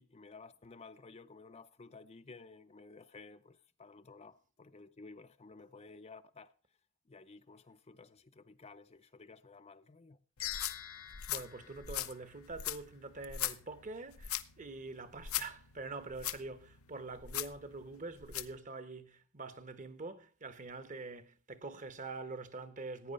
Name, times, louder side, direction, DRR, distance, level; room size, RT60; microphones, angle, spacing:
voice 1, 0.0-6.5 7.1-10.2, left 4 dB, 30° left, 0.6 m, -54 dB
sound 1, 10.4-18.6, left 12 dB, 90° left, 0.8 m, -41 dB
sound 2, 10.4-12.9, left 11 dB, 75° left, 1.2 m, -45 dB
voice 2, 11.3-23.1, right 3 dB, 40° right, 1.1 m, -45 dB
15.5 x 9.3 x 5.3 m
head